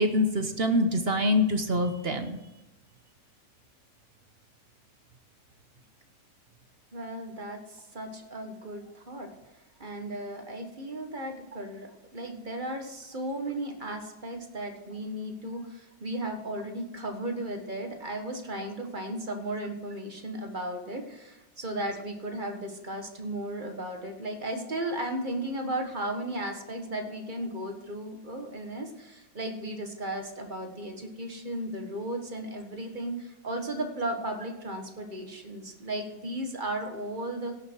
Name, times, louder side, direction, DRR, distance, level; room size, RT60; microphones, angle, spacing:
voice 1, 0.0-2.4, left 1 dB, 45° right, 7 dB, 0.8 m, -25 dB
voice 2, 6.9-9.3 9.8-37.5, right 1 dB, 30° right, 4 dB, 1.4 m, -35 dB
17.0 x 6.4 x 4.6 m, 1.0 s
omnidirectional pair, 2.0 m